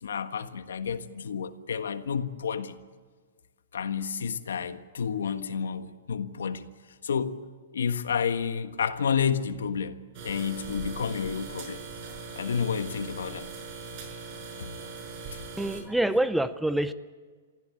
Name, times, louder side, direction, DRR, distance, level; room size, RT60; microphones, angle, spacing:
voice 1, 0.0-2.8 3.7-6.6 7.0-7.4 7.7-11.8 12.3-13.5 14.6-14.8 15.3-15.4, left 7 dB, 85° left, 1.5 m, -30 dB
sound 1, 10.1-15.8, right 4 dB, 45° right, 6.4 m, -40 dB
voice 2, 15.6-16.9, right 1 dB, 5° right, 0.7 m, -26 dB
24.5 x 15.5 x 8.7 m
hypercardioid pair, 135°, 0 cm